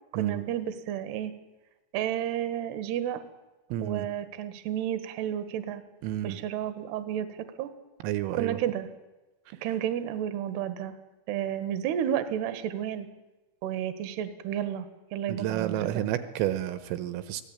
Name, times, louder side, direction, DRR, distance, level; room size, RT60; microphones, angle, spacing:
voice 1, 0.1-1.3 1.9-3.2 3.8-5.8 6.2-7.7 8.4-8.9 9.6-10.9 11.3-13.1 13.6-14.9 15.1-15.9, right 10 dB, 65° right, 10 dB, 3.1 m, -31 dB
voice 2, 3.7-4.1 6.0-6.4 8.0-8.6 15.3-17.4, right 12 dB, 80° right, 11 dB, 3.5 m, -30 dB
23.5 x 17.5 x 8.9 m, 1.1 s
omnidirectional pair, 6.0 m